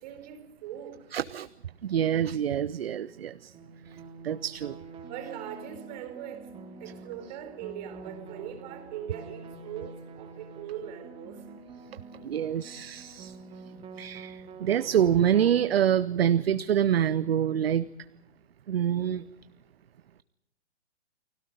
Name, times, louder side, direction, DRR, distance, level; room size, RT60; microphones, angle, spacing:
voice 1, 0.0-1.1 5.0-6.5 6.8-11.4, right 10 dB, 35° right, 3.9 m, -41 dB
voice 2, 1.1-1.5 1.8-3.5 3.9-4.8 12.2-13.4 14.0-17.9 18.7-19.2, right 9 dB, 55° right, 0.7 m, -26 dB
sound 1, 3.5-15.6, right 4 dB, 15° right, 2.6 m, -46 dB
29.5 x 20.5 x 5.2 m
figure-of-eight pair, 125°, 35 cm